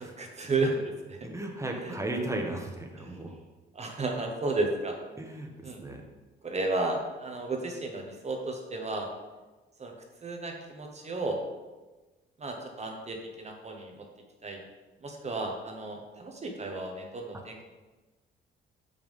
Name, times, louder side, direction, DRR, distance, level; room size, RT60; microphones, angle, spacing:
voice 1, 0.0-1.2 1.8-1.9 3.0-3.2 3.7-5.0 5.6-5.8 6.4-9.1 9.8-9.9 10.2-11.4 12.4-14.1 14.4-14.6 15.0-17.6, right 2 dB, 35° right, 2 dB, 1.2 m, -33 dB
voice 2, 1.2-3.3 5.2-6.0, right 2 dB, 15° right, 2 dB, 1.3 m, -35 dB
5.7 x 5.4 x 5.4 m, 1.2 s
cardioid pair, 90°, 20 cm